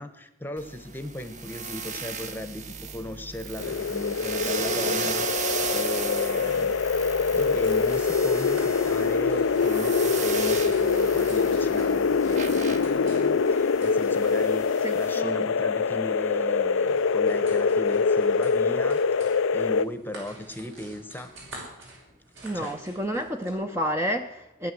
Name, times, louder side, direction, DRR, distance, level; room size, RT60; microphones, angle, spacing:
voice 1, 0.0-19.0 19.5-21.3 22.5-22.7, left 1 dB, 10° left, 9 dB, 1.1 m, -37 dB
sound 1, 0.6-15.2, right 5 dB, 35° right, 1.0 m, -35 dB
sound 2, 3.6-19.9, left 5 dB, 65° left, 0.5 m, -24 dB
sound 3, 7.0-23.5, right 1 dB, 65° right, 6.0 m, -48 dB
voice 2, 14.8-15.5 22.4-24.7, equal, 10° right, 4 dB, 0.8 m, -30 dB
18.0 x 10.5 x 7.7 m, 0.91 s
head